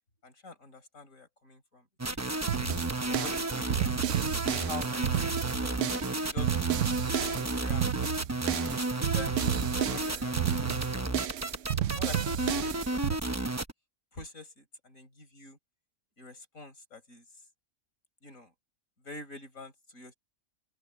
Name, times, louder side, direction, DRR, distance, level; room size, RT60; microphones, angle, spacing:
voice 1, 0.2-2.5 3.0-4.0 4.6-6.5 7.1-7.8 8.6-11.4 11.9-13.5 14.1-15.6 16.2-17.2 18.2-18.5 19.0-20.1, left 3 dB, 65° left, 5.2 m, -47 dB
sound 1, 2.0-13.7, right 2 dB, 15° right, 0.6 m, -32 dB
sound 2, 2.5-13.2, right 10 dB, 65° right, 1.0 m, -31 dB
open air
omnidirectional pair, 1.5 m